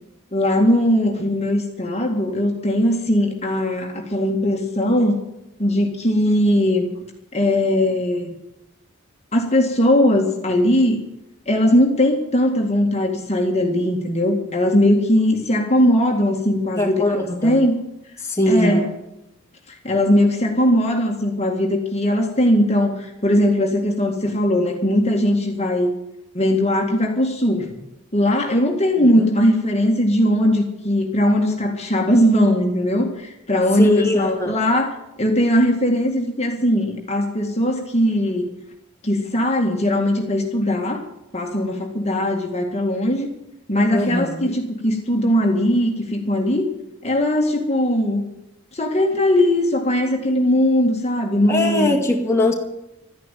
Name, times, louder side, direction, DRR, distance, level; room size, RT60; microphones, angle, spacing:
voice 1, 0.3-5.2 5.6-6.9 7.3-8.3 9.3-11.0 11.5-17.7 18.5-18.9 19.7-25.9 26.3-27.8 28.1-34.9 35.2-38.5 39.0-41.0 41.3-43.3 43.7-46.7 47.0-48.3 48.7-52.0, left 1 dB, 30° left, 2 dB, 2.0 m, -19 dB
voice 2, 16.8-17.6 18.2-18.8 29.2-29.3 33.8-34.6 43.9-44.5 51.5-52.5, left 2 dB, 10° left, 0 dB, 2.2 m, -21 dB
13.5 x 10.5 x 9.2 m, 0.87 s
head